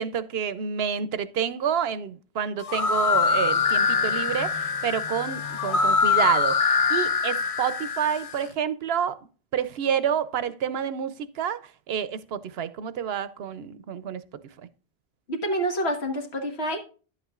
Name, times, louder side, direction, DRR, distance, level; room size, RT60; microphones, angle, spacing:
voice 1, 0.0-9.2 9.5-11.6 11.9-14.2, right 8 dB, 75° right, 0.9 m, -28 dB
sound 1, 2.6-8.4, left 5 dB, 40° left, 0.6 m, -24 dB
voice 2, 15.3-16.8, right 1 dB, 80° left, 1.7 m, -27 dB
10.5 x 8.2 x 2.4 m
omnidirectional pair, 1.1 m